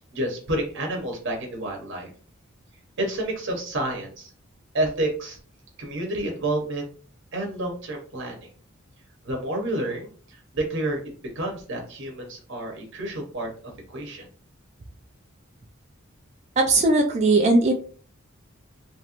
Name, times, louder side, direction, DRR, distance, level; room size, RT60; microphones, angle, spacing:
voice 1, 0.1-2.1 3.0-4.3 4.7-5.4 5.8-6.9 7.3-8.5 9.2-13.5 13.9-14.3, right 1 dB, 60° right, 1 dB, 0.9 m, -29 dB
voice 2, 16.6-17.7, right 2 dB, 35° right, 1 dB, 0.4 m, -18 dB
3.0 x 2.5 x 2.9 m, 0.41 s
head